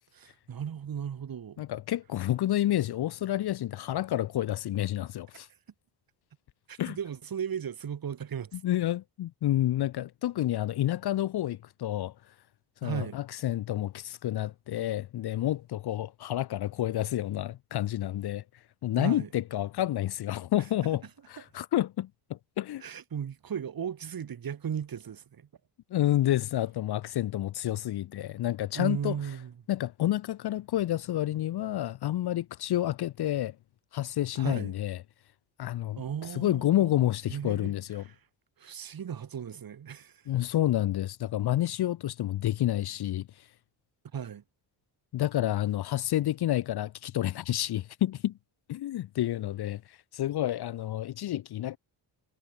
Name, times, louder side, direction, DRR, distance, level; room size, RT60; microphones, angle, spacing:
voice 1, 0.1-1.6 6.7-8.6 12.8-13.2 19.0-19.3 22.8-25.5 28.7-29.5 34.3-34.7 36.0-37.0 37.3-37.7 38.1-38.2 38.6-40.3 44.1-44.4, right 8 dB, 50° right, 5.8 m, -36 dB
voice 2, 1.6-5.5 6.8-7.0 8.5-12.1 12.8-18.4 18.8-22.8 25.9-29.2 29.7-33.6 33.9-35.0 35.6-36.0 36.4-38.0 40.3-43.5 45.1-48.4 48.7-51.8, left 13 dB, 55° left, 0.7 m, -29 dB
cardioid pair, 145°, 45 cm